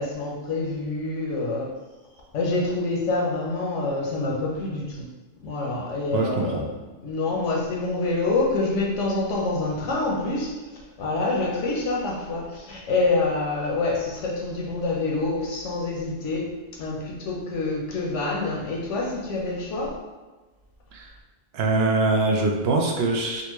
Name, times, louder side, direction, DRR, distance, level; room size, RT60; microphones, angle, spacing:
voice 1, 0.0-1.7 2.3-5.1 5.4-6.6 7.0-10.5 11.0-20.0, left 3 dB, 90° left, -1 dB, 1.0 m, -26 dB
voice 2, 6.1-6.6 20.9-21.1 21.5-23.4, right 3 dB, 65° right, 1 dB, 0.8 m, -23 dB
4.0 x 2.2 x 3.0 m, 1.2 s
omnidirectional pair, 1.2 m